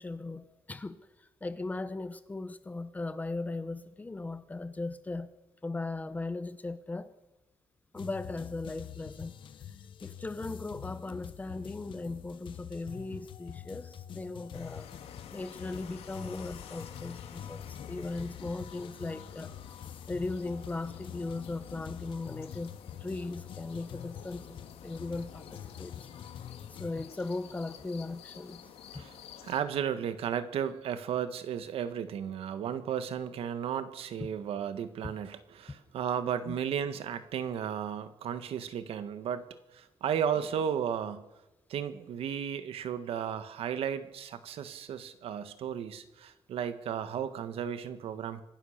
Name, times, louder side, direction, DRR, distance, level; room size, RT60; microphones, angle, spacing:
voice 1, 0.0-5.3 5.6-7.1 7.9-9.3 10.0-14.9 15.3-19.5 20.1-22.7 23.0-25.9 26.7-28.6 34.2-34.3 35.7-35.8 36.4-36.5, left 2 dB, 15° left, 1.0 m, -38 dB
sound 1, 8.0-26.9, left 9 dB, 55° left, 1.2 m, -46 dB
sound 2, 14.5-29.6, left 8 dB, 85° left, 2.3 m, -50 dB
voice 2, 29.4-39.4 39.7-41.2 41.7-48.4, right 8 dB, 75° right, 1.6 m, -34 dB
26.0 x 16.0 x 6.7 m
wide cardioid pair, 165°, 10 cm